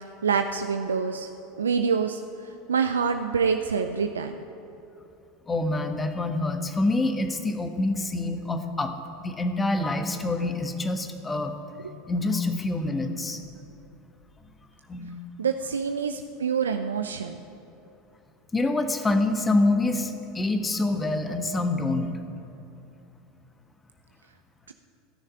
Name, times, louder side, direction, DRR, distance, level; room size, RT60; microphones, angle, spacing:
voice 1, 0.2-1.3 1.6-4.4 15.4-17.4 24.7-24.8, right 6 dB, 85° right, 7 dB, 0.5 m, -26 dB
voice 2, 5.5-8.9 9.2-11.5 12.1-13.4 14.9-15.2 18.5-22.1, left 2 dB, 15° left, 6 dB, 1.3 m, -26 dB
14.5 x 6.5 x 9.7 m, 2.9 s
hypercardioid pair, 80°, 0 cm